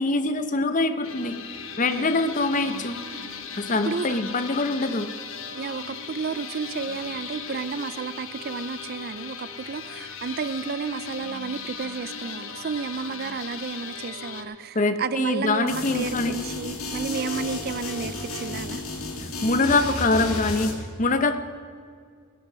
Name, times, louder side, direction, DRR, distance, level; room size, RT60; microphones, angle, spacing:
voice 1, 0.0-1.4 1.8-3.0 3.5-5.1 14.7-16.4 19.4-21.4, left 3 dB, 35° left, 9 dB, 0.8 m, -24 dB
sound 1, 1.0-14.4, left 5 dB, 70° left, 1.3 m, -37 dB
voice 2, 1.9-2.2 3.9-4.2 5.5-18.8, right 5 dB, 45° right, 14 dB, 0.4 m, -32 dB
sound 2, 15.7-20.7, left 2 dB, 85° left, 2.2 m, -32 dB
17.5 x 10.5 x 6.2 m, 2.1 s
head